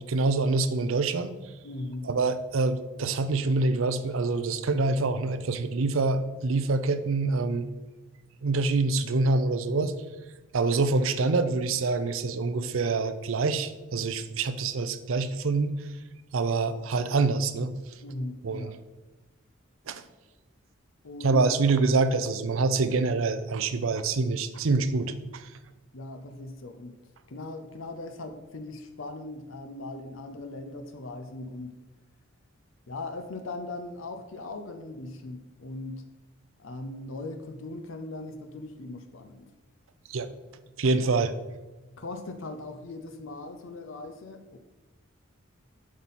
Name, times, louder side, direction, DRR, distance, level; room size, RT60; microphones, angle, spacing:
voice 1, 0.0-1.4 2.0-7.7 8.4-9.9 10.5-15.7 16.3-17.7 18.4-18.7 19.9-20.0 21.2-25.5 40.1-40.3 40.8-41.3, right 3 dB, 80° right, 10 dB, 0.5 m, -26 dB
voice 2, 1.6-2.3 18.0-18.7 21.0-21.4 25.9-27.0 27.3-31.8 32.9-36.1 36.6-39.5 41.2-41.3 42.0-44.6, left 2 dB, 70° left, 7 dB, 0.6 m, -39 dB
7.4 x 5.6 x 4.2 m, 1.1 s
head